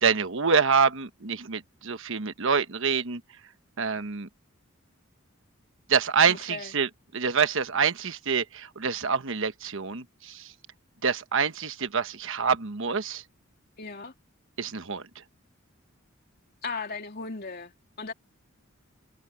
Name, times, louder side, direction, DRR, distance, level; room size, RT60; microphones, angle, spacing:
voice 1, 0.0-3.2 3.8-4.3 5.9-10.5 11.0-13.2 14.6-15.0, right 6 dB, 65° right, 1.2 m, -26 dB
voice 2, 6.3-6.7 13.8-14.1 16.6-17.7 18.0-18.1, left 4 dB, 50° left, 3.1 m, -36 dB
head